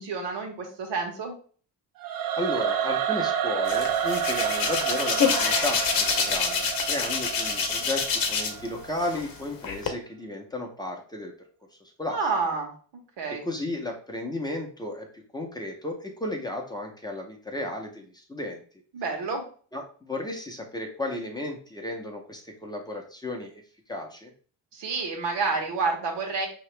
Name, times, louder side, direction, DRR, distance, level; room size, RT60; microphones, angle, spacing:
voice 1, 0.0-1.3 12.1-12.7 13.2-13.4 18.9-19.4 24.7-26.5, right 4 dB, 75° right, 2 dB, 1.3 m, -29 dB
Singing / Musical instrument, 2.0-9.1, right 9 dB, 55° right, 0.5 m, -30 dB
voice 2, 2.4-11.3 11.8-12.2 13.3-18.6 19.7-23.5 23.9-24.3, left 1 dB, 10° left, 1 dB, 0.5 m, -34 dB
Hands, 3.7-8.7 9.0-9.9, left 5 dB, 50° left, 0.8 m, -27 dB
5.6 x 2.9 x 3.2 m, 0.43 s
wide cardioid pair, 175°, 43 cm